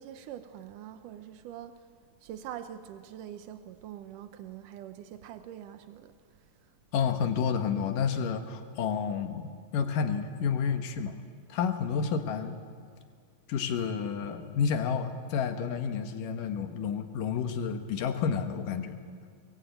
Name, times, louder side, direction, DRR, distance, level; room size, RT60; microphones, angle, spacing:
voice 1, 0.0-1.8 2.2-6.1, right 10 dB, 90° right, 9 dB, 2.5 m, -44 dB
voice 2, 6.9-11.2 11.5-12.6 13.5-18.9, left 6 dB, 85° left, 6 dB, 3.0 m, -30 dB
23.0 x 22.5 x 9.1 m, 2.1 s
omnidirectional pair, 3.7 m